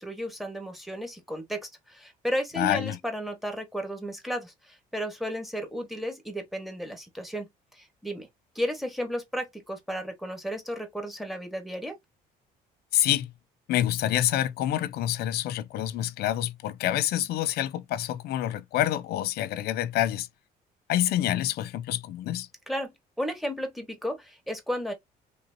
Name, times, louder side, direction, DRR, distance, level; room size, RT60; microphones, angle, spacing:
voice 1, 0.0-7.5 7.7-8.3 8.5-11.9 22.7-24.9, equal, ahead, 1.2 m, -33 dB
voice 2, 2.6-3.0 12.9-13.3 13.7-20.3 20.9-22.5, left 13 dB, 70° left, 0.4 m, -27 dB
3.3 x 2.7 x 2.6 m
cardioid pair, 110°, 17 cm